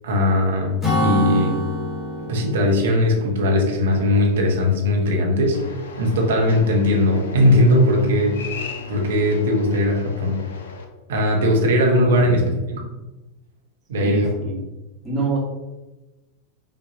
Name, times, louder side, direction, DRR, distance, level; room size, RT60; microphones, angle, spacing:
voice 1, 0.0-1.6 2.3-5.6 6.0-8.5 8.9-10.4 11.1-12.5 13.9-14.3, left 1 dB, 60° right, 0 dB, 0.9 m, -19 dB
Acoustic guitar / Strum, 0.8-4.4, equal, 5° left, 1.3 m, -26 dB
sound 1, 5.5-10.8, left 5 dB, 60° left, 0.5 m, -38 dB
voice 2, 12.1-12.6 14.0-14.6 15.0-15.4, right 4 dB, 15° right, -4 dB, 1.3 m, -27 dB
5.2 x 2.5 x 2.7 m, 1.1 s
figure-of-eight pair, 90°, 0 cm